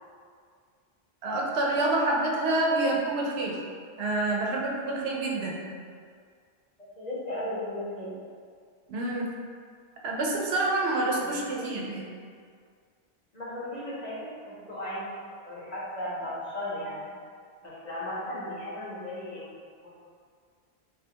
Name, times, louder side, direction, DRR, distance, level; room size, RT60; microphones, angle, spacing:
voice 1, 1.2-3.6 4.0-5.6 8.9-9.4 10.0-12.0, right 2 dB, 85° right, -2 dB, 0.8 m, -27 dB
voice 2, 6.8-8.1 11.2-11.8 13.3-15.1 15.4-17.1 17.6-19.9, left 1 dB, 45° left, -7 dB, 0.8 m, -36 dB
3.8 x 2.1 x 2.7 m, 2.1 s
omnidirectional pair, 1.0 m